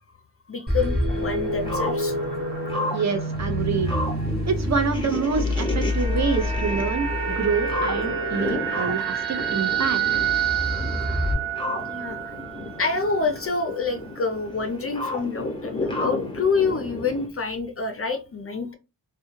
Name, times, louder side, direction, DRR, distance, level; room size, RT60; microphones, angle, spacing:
voice 1, 0.5-2.2 4.2-4.3 11.9-12.3 12.8-18.7, left 4 dB, 35° left, 0.5 m, -27 dB
sound 1, 0.7-11.3, left 1 dB, 25° right, 0.9 m, -28 dB
sound 2, 1.1-17.3, left 2 dB, 10° left, 0.9 m, -33 dB
voice 2, 2.9-3.9 4.5-10.0, right 5 dB, 40° right, 0.6 m, -27 dB
sound 3, 5.1-13.4 13.7-13.9, right 10 dB, 75° right, 1.1 m, -29 dB
2.2 x 2.2 x 3.1 m
cardioid pair, 60°, 42 cm